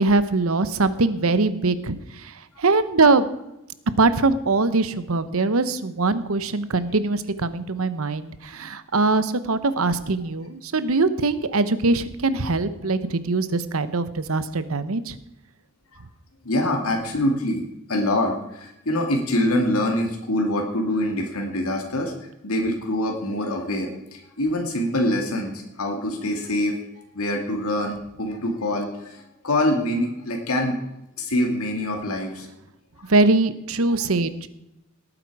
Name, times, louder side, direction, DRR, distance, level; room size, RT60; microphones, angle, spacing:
voice 1, 0.0-3.3 4.0-15.2 33.1-34.5, right 3 dB, 75° right, 13 dB, 0.9 m, -22 dB
voice 2, 16.4-17.6 17.9-22.1 22.4-26.7 27.1-30.8 31.2-32.5 33.0-33.1 34.0-34.1, left 1 dB, 90° left, 2 dB, 2.2 m, -25 dB
18.5 x 8.9 x 4.8 m, 0.88 s
head